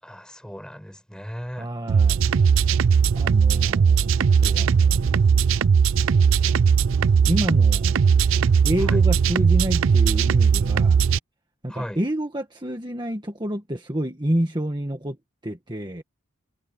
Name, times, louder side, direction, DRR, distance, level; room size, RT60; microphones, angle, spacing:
voice 1, 0.0-1.7 8.8-9.0 11.7-12.0, equal, 5° left, 5.0 m, -36 dB
voice 2, 1.6-2.2 3.1-5.2 7.3-8.0 8.6-11.0 11.6-15.2 15.4-16.0, equal, 20° right, 1.7 m, -28 dB
sound 1, 1.9-11.2, right 6 dB, 70° right, 0.4 m, -19 dB
head